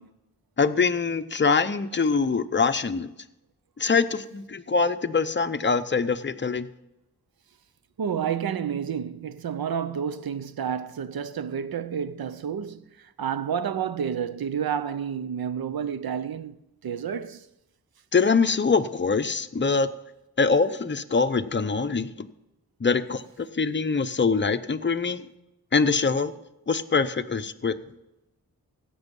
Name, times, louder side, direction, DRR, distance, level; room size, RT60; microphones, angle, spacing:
voice 1, 0.6-3.1 3.8-6.7 18.1-19.9 20.4-22.3 22.8-25.3 25.7-26.3 26.7-27.8, left 4 dB, 30° left, 0.7 m, -24 dB
voice 2, 8.0-16.6 16.8-17.5, right 8 dB, 85° right, 0.7 m, -30 dB
16.5 x 6.3 x 5.3 m
wide cardioid pair, 80°, 35 cm